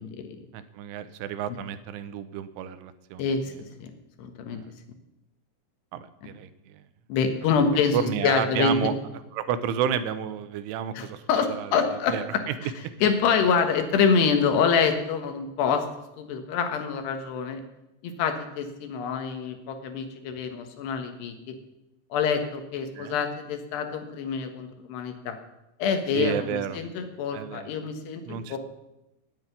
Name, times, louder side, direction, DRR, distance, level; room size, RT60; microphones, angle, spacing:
voice 1, 0.0-0.4 3.2-3.5 3.8-3.9 4.2-4.6 7.1-8.9 10.9-12.7 13.0-15.8 16.2-17.6 18.0-21.5 22.1-25.4 25.8-28.6, left 6 dB, 70° left, 6 dB, 3.2 m, -26 dB
voice 2, 0.5-3.3 4.5-4.7 5.9-6.8 7.9-8.9 9.3-11.2 11.6-11.8 12.1-12.5 23.0-23.2 26.1-26.8 27.3-27.7 28.2-28.6, right 9 dB, 90° right, 12 dB, 3.4 m, -31 dB
17.0 x 8.0 x 9.4 m, 0.94 s
omnidirectional pair, 5.4 m